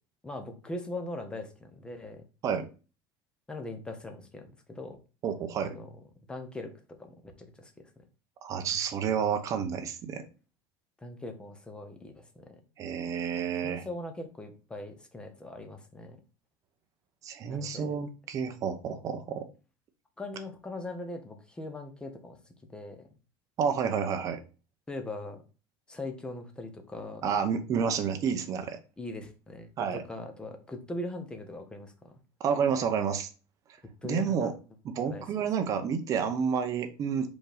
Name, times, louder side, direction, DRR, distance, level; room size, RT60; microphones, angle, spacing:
voice 1, 0.2-2.2 3.5-5.0 5.6-5.9 6.3-7.7 11.0-12.6 13.6-16.2 17.5-18.0 20.2-22.4 22.7-23.1 24.9-25.4 25.9-27.3 29.0-32.1 34.0-34.5 35.0-35.2 35.6-35.7, left 2 dB, 5° left, 6 dB, 0.8 m, -40 dB
voice 2, 5.2-5.8 8.4-10.2 12.8-13.9 17.2-19.5 23.6-24.4 27.2-28.8 29.8-30.0 32.4-33.3 34.0-34.5 34.8-37.3, right 7 dB, 30° right, 7 dB, 0.8 m, -30 dB
5.1 x 3.8 x 5.0 m, 0.34 s
cardioid pair, 175°, 12 cm